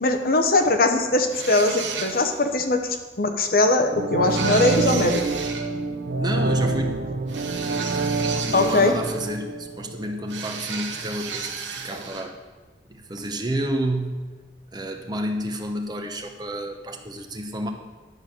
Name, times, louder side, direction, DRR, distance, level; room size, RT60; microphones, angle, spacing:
voice 1, 0.0-2.9 3.2-5.2 8.5-8.9, left 2 dB, 55° left, 6 dB, 0.9 m, -21 dB
sound 1, 1.3-2.5 4.3-5.7 7.3-9.3 10.3-12.3, right 6 dB, 85° right, 1.1 m, -33 dB
sound 2, 3.8-10.7 11.0-11.1, right 3 dB, 70° right, 0.6 m, -27 dB
voice 2, 6.2-7.1 8.4-12.4 12.9-14.3 14.7-17.7, right 1 dB, 25° right, 4 dB, 0.9 m, -30 dB
11.0 x 6.1 x 6.7 m, 1.2 s
head